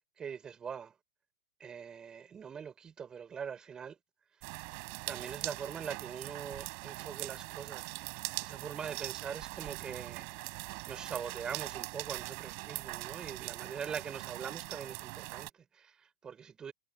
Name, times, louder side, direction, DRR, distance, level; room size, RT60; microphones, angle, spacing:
voice 1, 0.2-0.9 1.6-4.0 5.1-8.1 8.4-10.3 10.9-16.7, right 7 dB, 25° right, 3.8 m, -43 dB
sound 1, 4.4-15.5, right 40 dB or more, 50° right, 4.8 m, -42 dB
figure-of-eight pair, 95°, 3 cm